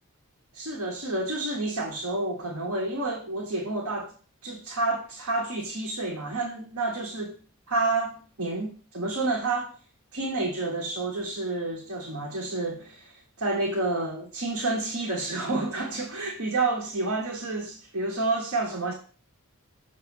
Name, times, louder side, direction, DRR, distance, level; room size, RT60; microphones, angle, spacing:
voice 1, 0.5-4.1 4.4-7.3 7.7-9.7 10.1-18.9, right 2 dB, 65° right, 1.4 m, -29 dB
6.7 x 3.2 x 6.0 m
head